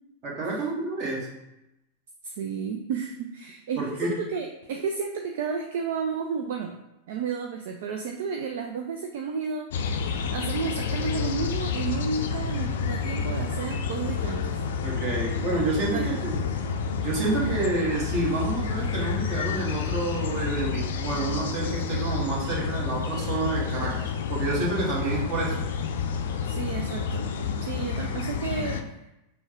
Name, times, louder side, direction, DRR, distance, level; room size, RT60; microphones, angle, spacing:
voice 1, 0.2-1.3 3.8-4.1 14.8-16.4 17.0-24.0 24.3-25.6, right 3 dB, 35° right, -3 dB, 1.4 m, -29 dB
voice 2, 2.2-6.8 7.1-10.0 10.3-14.6 15.9-16.0 26.4-27.3 27.6-28.8, right 5 dB, 55° right, 3 dB, 0.4 m, -32 dB
sound 1, 9.7-28.8, left 6 dB, 60° left, 0.4 m, -29 dB
5.9 x 2.2 x 3.7 m, 0.92 s
figure-of-eight pair, 90°, 0 cm